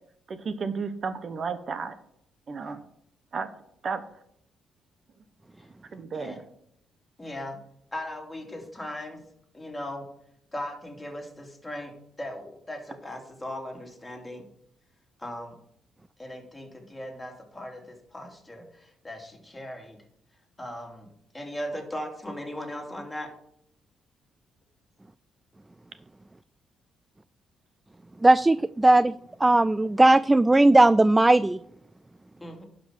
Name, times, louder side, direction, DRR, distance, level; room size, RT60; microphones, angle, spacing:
voice 1, 0.3-1.9 2.5-2.8 3.3-3.5 3.8-4.0 5.9-6.4, right 5 dB, 45° right, 10 dB, 0.9 m, -32 dB
voice 2, 7.2-7.6 7.9-9.2 9.5-10.1 10.5-14.4 15.2-15.5 16.2-20.0 20.6-21.1 21.3-23.3 32.4-32.6, left 1 dB, 15° left, 1 dB, 2.7 m, -38 dB
voice 3, 28.2-29.1 29.4-31.6, right 2 dB, 15° right, 16 dB, 0.3 m, -18 dB
11.0 x 5.2 x 6.1 m, 0.72 s
cardioid pair, 90°, 0 cm